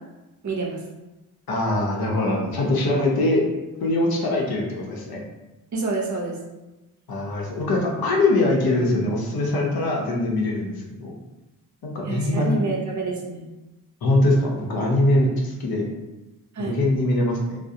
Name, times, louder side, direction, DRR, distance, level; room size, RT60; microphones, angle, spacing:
voice 1, 0.4-0.8 5.7-6.4 12.0-13.5 16.5-16.8, right 3 dB, 40° right, -1 dB, 0.7 m, -27 dB
voice 2, 1.5-3.5 3.8-5.2 7.1-10.7 11.0-11.1 11.8-12.6 14.0-15.9 16.6-17.6, left 2 dB, 55° left, -1 dB, 0.8 m, -22 dB
2.3 x 2.1 x 2.7 m, 1.0 s
hypercardioid pair, 45°, 43 cm